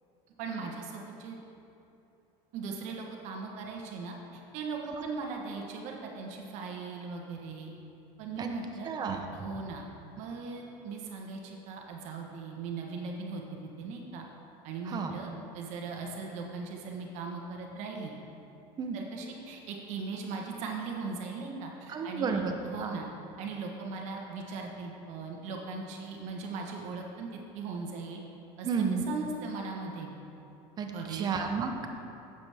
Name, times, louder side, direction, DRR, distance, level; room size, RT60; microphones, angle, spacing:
voice 1, 0.4-1.4 2.5-7.7 8.2-8.9 9.3-9.8 10.2-13.4 13.8-14.2 14.6-18.1 18.9-23.1 23.4-28.2 28.6-30.1 30.9-31.3, right 4 dB, 60° right, 1 dB, 1.3 m, -39 dB
voice 2, 8.8-9.2 14.9-15.1 18.8-19.0 21.9-22.5 22.8-23.0 28.6-29.0 30.8-31.9, right 5 dB, 30° right, 4 dB, 0.8 m, -31 dB
9.8 x 8.1 x 3.5 m, 2.9 s
cardioid pair, 135°, 13 cm